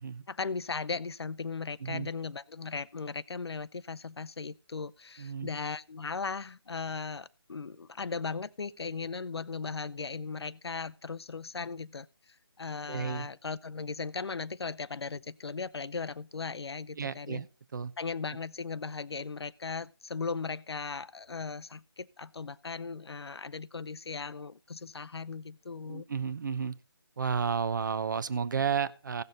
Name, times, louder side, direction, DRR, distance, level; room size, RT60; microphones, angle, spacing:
voice 1, 0.3-12.1 12.6-17.4 18.0-26.1, left 4 dB, 85° left, 0.6 m, -37 dB
voice 2, 5.2-5.5 12.9-13.3 17.0-17.5 17.7-17.9 25.9-26.8 27.2-29.2, right 6 dB, 50° right, 0.7 m, -32 dB
16.0 x 6.7 x 3.9 m
figure-of-eight pair, 160°, 13 cm